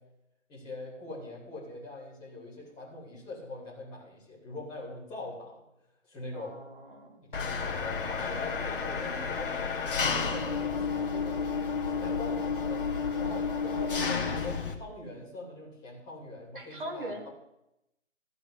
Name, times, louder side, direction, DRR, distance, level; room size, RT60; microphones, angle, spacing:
voice 1, 0.5-5.6 6.1-6.5 7.2-9.5 9.8-12.8 13.2-17.3, left 2 dB, 10° left, -6 dB, 2.9 m, -42 dB
voice 2, 6.3-7.2 16.5-17.2, right 1 dB, 40° right, 2 dB, 2.2 m, -40 dB
Engine, 7.3-14.7, left 5 dB, 45° left, 1.5 m, -31 dB
14.0 x 5.0 x 8.0 m, 0.87 s
figure-of-eight pair, 150°, 38 cm